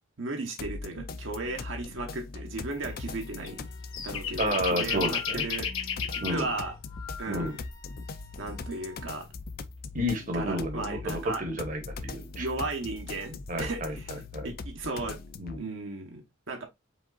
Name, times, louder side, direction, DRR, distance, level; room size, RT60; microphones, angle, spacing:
voice 1, 0.2-3.6 4.0-5.9 6.3-6.8 7.2-7.6 8.4-9.3 10.3-11.4 12.4-14.1 14.4-15.2 15.6-16.2 16.5-16.6, right 2 dB, 65° right, 1.0 m, -35 dB
sound 1, 0.6-15.6, left 3 dB, 45° left, 0.4 m, -40 dB
Wind instrument woodwind instrument, 2.8-9.1, left 4 dB, 20° left, 0.9 m, -48 dB
sound 2, 3.4-3.5 3.9-6.4, left 8 dB, 80° left, 1.6 m, -31 dB
voice 2, 4.4-5.4 6.2-6.5 7.3-7.5 9.9-12.5 13.5-14.5 15.4-15.6, equal, 40° right, 1.1 m, -31 dB
5.1 x 3.6 x 2.4 m
head